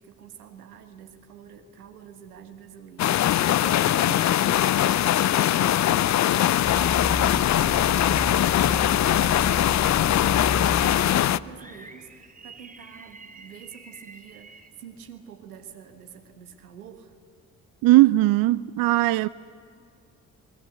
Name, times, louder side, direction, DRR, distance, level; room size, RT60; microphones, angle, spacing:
voice 1, 0.0-17.1, right 7 dB, 85° right, 1.5 m, -45 dB
sound 1, 3.0-11.4, left 12 dB, 40° left, 0.6 m, -21 dB
sound 2, 6.6-11.6, equal, ahead, 0.7 m, -32 dB
sound 3, 11.5-14.7, right 3 dB, 20° right, 2.5 m, -48 dB
voice 2, 17.8-19.3, right 18 dB, 55° right, 0.5 m, -18 dB
28.5 x 21.5 x 7.8 m
figure-of-eight pair, 40°, 44 cm